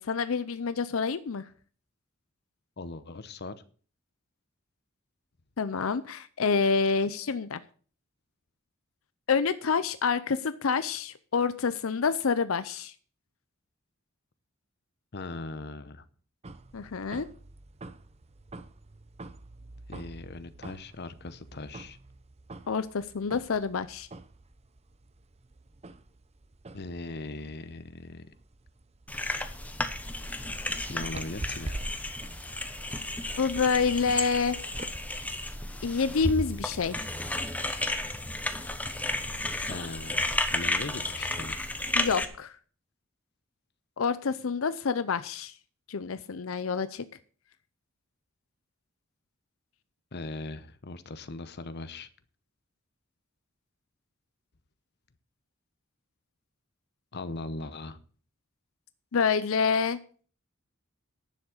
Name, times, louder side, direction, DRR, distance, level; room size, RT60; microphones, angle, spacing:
voice 1, 0.0-1.4 5.6-7.6 9.3-12.9 16.7-17.3 22.7-24.1 33.4-34.6 35.8-37.0 41.9-42.6 44.0-45.6 45.9-47.1 59.1-60.2, left 5 dB, 85° left, 13 dB, 0.6 m, -27 dB
voice 2, 2.8-3.6 15.1-16.0 19.9-22.0 26.7-28.3 30.9-31.8 39.5-40.3 40.5-41.6 50.1-52.1 57.1-58.0, left 3 dB, 55° left, 13 dB, 0.9 m, -39 dB
sound 1, 16.4-34.9, right 2 dB, 30° right, 0.7 m, -46 dB
sound 2, 29.1-42.2, left 1 dB, 5° left, 1.0 m, -33 dB
10.5 x 7.2 x 6.5 m, 0.42 s
head